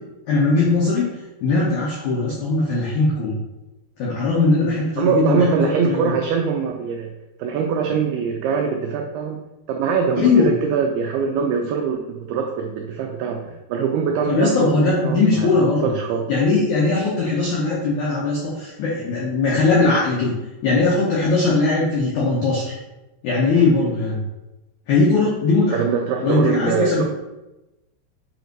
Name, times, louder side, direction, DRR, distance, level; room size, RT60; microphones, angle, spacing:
voice 1, 0.3-1.0 1.4-3.4 4.0-5.6 5.8-6.1 10.2-10.5 14.3-15.9 16.3-20.3 20.6-22.8 23.2-24.2 24.9-25.8 26.2-27.0, left 3 dB, 85° left, -6 dB, 1.7 m, -19 dB
voice 2, 5.0-7.1 7.4-9.4 9.7-13.4 13.7-16.3 25.7-27.0, right 6 dB, 90° right, 2 dB, 2.2 m, -23 dB
7.8 x 2.7 x 4.5 m, 1.0 s
omnidirectional pair, 5.1 m